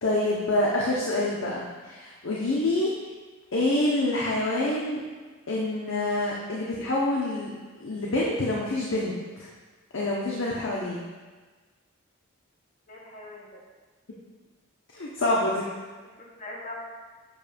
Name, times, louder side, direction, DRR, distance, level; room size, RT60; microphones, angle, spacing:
voice 1, 0.0-2.9 3.5-5.0 5.5-7.5 7.8-9.5 9.9-11.0 14.9-15.6, left 1 dB, 70° left, -4 dB, 0.8 m, -26 dB
voice 2, 12.9-13.6 16.0-16.8, left 2 dB, 40° left, -3 dB, 1.0 m, -42 dB
7.3 x 2.7 x 5.0 m, 1.4 s
head